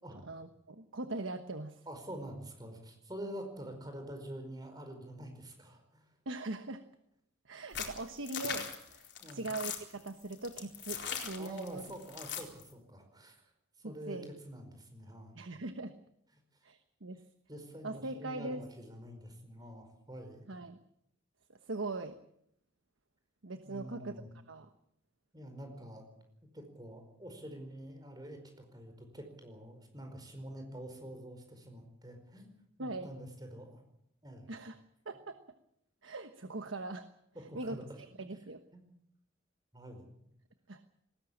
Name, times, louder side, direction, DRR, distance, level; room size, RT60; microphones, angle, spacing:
voice 1, 0.2-1.8 6.2-6.8 7.4-11.8 13.8-14.3 15.3-15.9 16.6-17.2 17.8-18.6 20.5-20.8 21.5-22.2 23.4-24.7 32.8-33.1 34.5-35.4 36.0-37.1 37.5-38.6 40.7-40.8, right 2 dB, 85° right, 9 dB, 1.2 m, -41 dB
voice 2, 1.9-6.0 9.2-9.4 11.4-13.4 13.8-14.2 14.4-15.4 17.5-20.4 23.6-24.3 25.3-26.0 26.5-32.5 32.8-33.8 34.2-34.5 37.3-37.8 38.7-38.8 39.7-40.1, right 1 dB, 20° right, 5 dB, 4.9 m, -47 dB
sound 1, 7.7-12.6, left 7 dB, 60° left, 4.2 m, -39 dB
20.0 x 18.0 x 8.7 m, 0.76 s
head